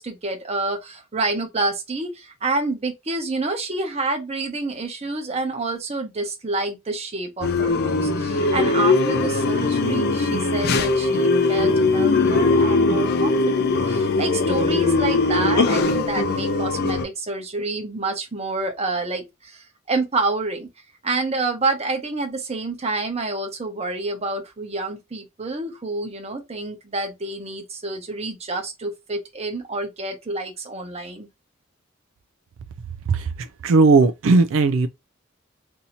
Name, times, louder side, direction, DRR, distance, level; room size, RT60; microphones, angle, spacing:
voice 1, 0.0-20.7 21.0-31.3, right 3 dB, 30° right, 0.8 m, -28 dB
sound 1, 7.4-17.0, left 3 dB, 50° left, 0.5 m, -20 dB
voice 2, 33.6-34.9, right 3 dB, 70° right, 0.3 m, -16 dB
2.7 x 2.7 x 4.1 m
head